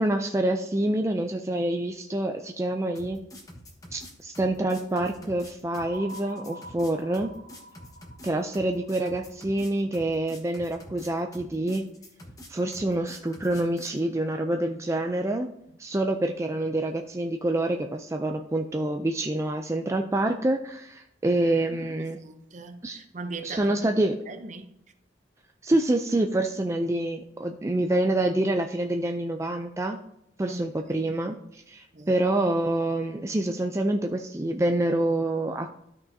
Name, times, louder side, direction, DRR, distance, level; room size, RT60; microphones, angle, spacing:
voice 1, 0.0-3.2 3.9-7.3 8.2-11.8 12.5-15.5 15.8-22.2 22.8-23.0 23.4-24.1 25.6-30.0 30.4-35.8, right 1 dB, 15° right, 0.4 m, -27 dB
sound 1, 3.0-14.0, left 1 dB, 20° left, 1.2 m, -46 dB
sound 2, 5.7-10.0, right 1 dB, 90° left, 2.2 m, -46 dB
voice 2, 21.7-23.8 24.3-24.7 30.5-30.6 31.9-32.1, right 3 dB, 45° right, 0.7 m, -40 dB
13.0 x 5.7 x 2.7 m
head